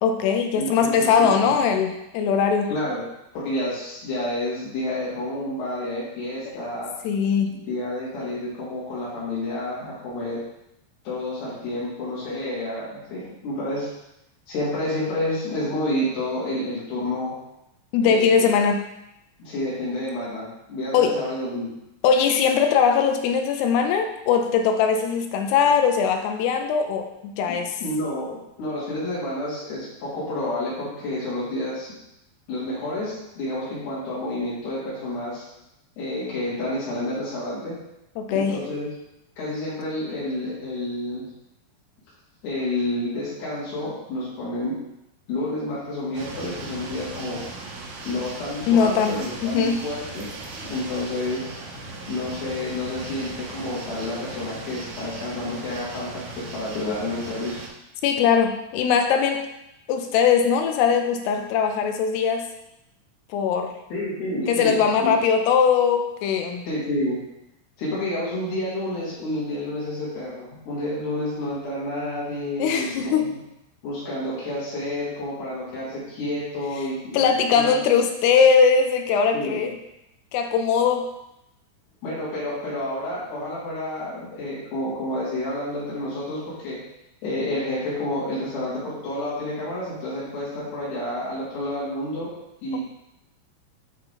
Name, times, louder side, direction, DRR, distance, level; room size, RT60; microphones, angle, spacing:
voice 1, 0.0-2.7 6.5-6.6 7.0-7.6 17.9-18.9 20.9-21.2 22.0-27.8 38.2-38.6 48.7-49.8 58.0-59.5 59.9-62.5 63.3-63.7 64.5-66.6 72.6-73.3 77.1-79.8 80.3-81.1, left 6 dB, 85° left, 5 dB, 2.4 m, -20 dB
voice 2, 0.5-1.5 2.7-3.0 3.3-6.9 7.5-10.4 11.0-13.9 14.5-17.3 18.0-18.5 19.4-21.7 27.5-31.9 32.5-35.4 36.0-37.8 38.3-38.9 39.4-41.3 42.4-44.8 45.3-47.4 48.0-51.5 52.1-57.6 63.9-65.1 66.6-67.2 67.8-73.4 73.8-77.7 79.3-79.6 82.0-86.8 87.2-92.3 92.6-92.8, left 1 dB, 65° left, -9 dB, 4.9 m, -29 dB
sound 1, 46.1-57.7, right 2 dB, 75° right, 3.5 m, -38 dB
10.5 x 3.6 x 3.9 m, 0.86 s
omnidirectional pair, 5.3 m